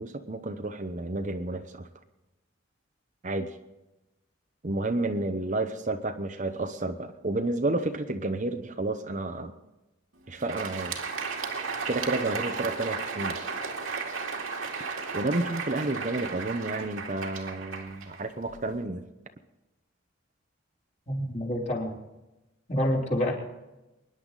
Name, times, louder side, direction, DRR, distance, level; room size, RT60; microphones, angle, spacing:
voice 1, 0.0-1.9 3.2-3.6 4.6-9.5 10.3-10.9 11.9-13.4 15.1-19.0, right 2 dB, 35° right, 7 dB, 0.9 m, -31 dB
Crowd, 10.3-18.7, right 5 dB, 80° right, 2.2 m, -34 dB
voice 2, 21.1-22.0 22.7-23.3, left 1 dB, 35° left, -2 dB, 3.6 m, -27 dB
24.0 x 10.5 x 4.1 m, 1.0 s
head